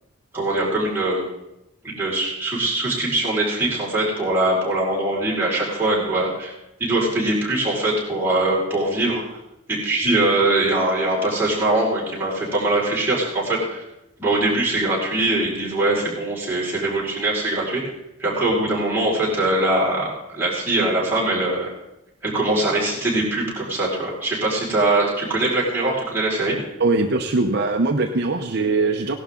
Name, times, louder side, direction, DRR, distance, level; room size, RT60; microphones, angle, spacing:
voice 1, 0.3-1.3 1.8-6.5 6.8-9.2 9.7-13.8 14.2-17.8 18.2-20.1 20.3-21.7 22.2-26.5, right 2 dB, 10° right, -7 dB, 4.8 m, -22 dB
voice 2, 26.8-29.2, right 3 dB, 50° right, 4 dB, 0.7 m, -21 dB
17.0 x 11.5 x 3.7 m, 0.90 s
head